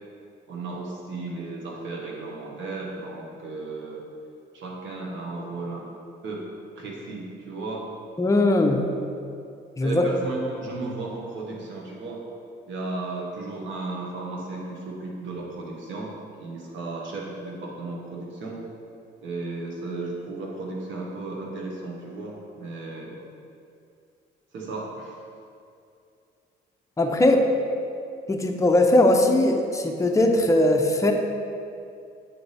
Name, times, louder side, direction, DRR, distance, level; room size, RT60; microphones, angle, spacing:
voice 1, 0.5-4.0 4.5-5.9 6.2-6.4 6.7-7.9 9.8-12.2 12.7-16.1 16.4-18.6 19.2-23.2 24.5-25.2, right 3 dB, 75° right, -2 dB, 1.3 m, -34 dB
voice 2, 8.2-8.9 9.8-10.0 27.0-27.5 28.3-31.1, left 1 dB, 15° left, 2 dB, 0.6 m, -20 dB
7.7 x 3.4 x 4.1 m, 2.5 s
cardioid pair, 90°, 20 cm